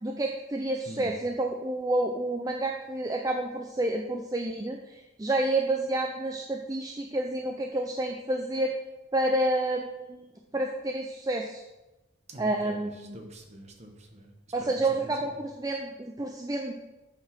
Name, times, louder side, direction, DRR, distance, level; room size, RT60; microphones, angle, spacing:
voice 1, 0.0-8.7 9.1-11.6 12.4-13.2 14.5-16.7, right 1 dB, 20° right, 2 dB, 0.4 m, -29 dB
voice 2, 0.8-1.1 12.3-14.3 14.6-15.3, right 1 dB, 35° right, 3 dB, 1.1 m, -45 dB
7.6 x 4.8 x 5.9 m, 1.1 s
head